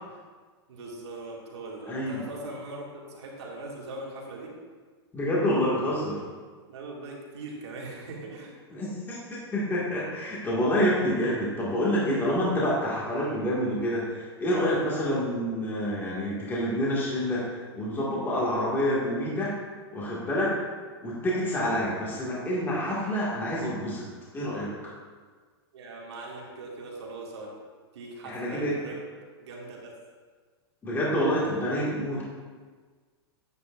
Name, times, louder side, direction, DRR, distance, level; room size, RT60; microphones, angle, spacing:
voice 1, 0.7-4.5 6.7-8.5 25.7-27.5 27.9-29.0 29.4-29.9, right 2 dB, 80° right, -2 dB, 2.3 m, -40 dB
voice 2, 1.9-2.2 5.1-6.2 8.7-9.2 9.5-17.5 17.7-19.5 19.9-20.5 21.0-24.0 24.3-24.7 28.3-28.8 30.8-32.2, equal, 15° left, -6 dB, 1.9 m, -27 dB
9.6 x 8.4 x 2.5 m, 1.5 s
supercardioid pair, 140°, 14 cm